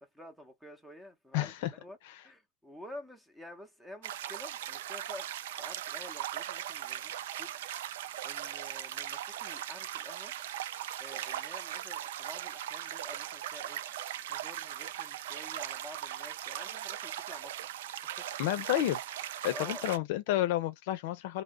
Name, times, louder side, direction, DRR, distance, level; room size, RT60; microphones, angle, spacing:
voice 1, 0.0-2.0 2.2-7.5 7.9-10.3 11.0-13.8 14.2-17.8 18.0-18.5 19.4-19.9, left 1 dB, 5° right, 0.7 m, -50 dB
voice 2, 1.3-1.7 2.0-2.2 18.4-19.0 19.4-21.4, left 13 dB, 65° left, 0.6 m, -30 dB
sound 1, 4.0-20.0, right 12 dB, 75° right, 0.3 m, -39 dB
2.2 x 2.0 x 3.6 m
supercardioid pair, 130°, 0 cm